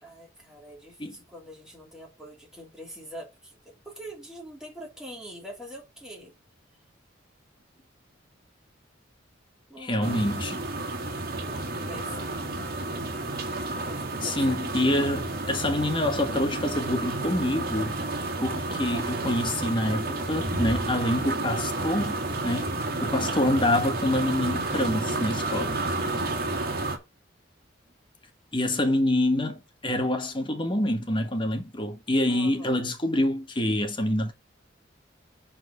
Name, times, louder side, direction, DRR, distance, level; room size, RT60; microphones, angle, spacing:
voice 1, 0.0-6.3 9.7-10.3 11.4-12.4 13.8-14.6 26.0-26.6 32.2-32.9, equal, 5° right, 3.4 m, -44 dB
voice 2, 9.8-10.6 14.2-17.9 18.4-22.2 22.4-22.7 23.0-25.8 28.5-34.3, left 1 dB, 25° left, 1.5 m, -26 dB
sound 1, 10.0-27.0, right 2 dB, 50° right, 2.5 m, -31 dB
7.5 x 4.4 x 6.9 m
head